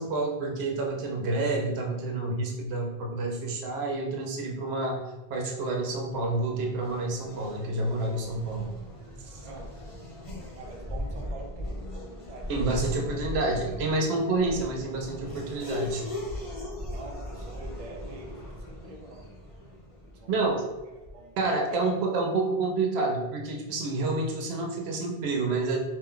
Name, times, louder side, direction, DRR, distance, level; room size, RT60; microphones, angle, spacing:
voice 1, 0.0-5.0 5.3-8.7 9.2-9.4 12.5-16.0 20.3-20.6 21.4-25.8, right 2 dB, 90° right, 1 dB, 0.9 m, -29 dB
Race car auto racing / Accelerating revving vroom, 5.8-21.4, left 1 dB, 40° left, 0.7 m, -39 dB
voice 2, 9.4-9.8 10.6-12.6 13.0-13.7 16.8-19.3 20.0-21.3 21.7-21.9, right 3 dB, 50° right, 1 dB, 0.5 m, -46 dB
2.5 x 2.1 x 3.7 m, 1.1 s
omnidirectional pair, 1.0 m